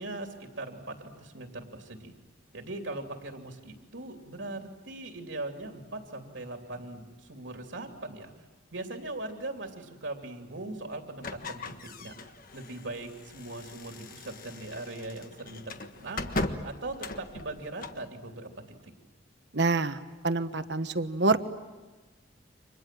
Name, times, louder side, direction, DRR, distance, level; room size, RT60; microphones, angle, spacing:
voice 1, 0.0-2.1 2.5-8.3 8.7-16.3 16.6-18.9, right 2 dB, 80° right, 3 dB, 2.9 m, -40 dB
sound 1, 11.2-18.1, left 2 dB, 45° left, 1.5 m, -39 dB
voice 2, 19.5-20.0 20.2-21.4, right 3 dB, 60° right, 10 dB, 1.3 m, -26 dB
30.0 x 26.0 x 7.6 m, 1.2 s
head